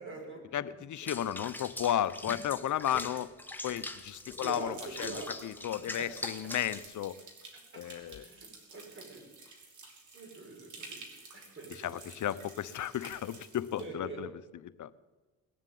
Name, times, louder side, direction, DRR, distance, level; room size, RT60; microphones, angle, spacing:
voice 1, 0.0-0.6 1.0-1.4 4.4-5.6 6.0-6.1 7.7-7.8 8.2-9.2 10.1-11.0 11.3-11.9 13.8-14.2, right 3 dB, 35° right, 0 dB, 6.7 m, -44 dB
voice 2, 0.5-3.3 3.6-5.1 5.4-7.2 7.7-8.3 11.7-14.3 14.8-14.9, left 11 dB, 55° left, 14 dB, 0.9 m, -34 dB
Water / Bathtub (filling or washing), 1.1-6.9, left 2 dB, 5° left, 1.6 m, -42 dB
sound 1, 3.9-13.9, right 3 dB, 55° right, 3.7 m, -52 dB
20.0 x 7.4 x 9.3 m, 1.2 s
cardioid pair, 85°, 36 cm